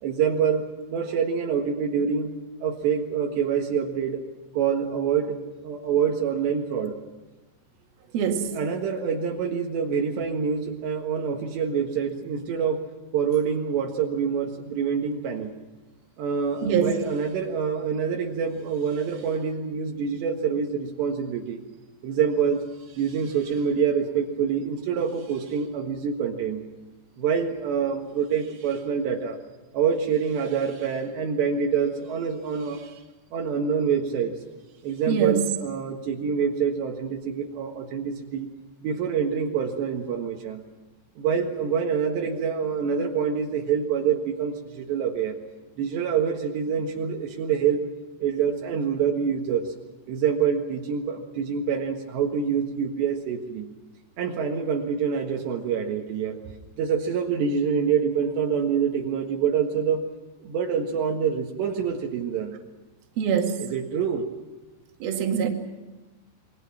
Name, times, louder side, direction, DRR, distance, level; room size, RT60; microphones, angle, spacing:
voice 1, 0.0-2.3 2.6-4.2 4.6-5.4 5.6-7.0 8.5-12.8 13.1-15.5 16.2-21.6 22.0-22.6 22.9-26.7 27.2-29.4 29.7-33.0 33.3-34.4 34.8-38.5 38.8-40.6 41.2-45.4 45.8-47.8 48.2-49.7 50.1-53.7 54.2-56.4 56.8-60.1 60.4-62.6 63.6-64.3, right 7 dB, 75° right, 1 dB, 3.8 m, -26 dB
voice 2, 8.1-8.6 16.6-16.9 35.1-35.5 63.2-63.7 65.0-65.5, right 7 dB, 60° right, 3 dB, 3.7 m, -24 dB
28.0 x 22.0 x 5.9 m, 1.2 s
omnidirectional pair, 5.0 m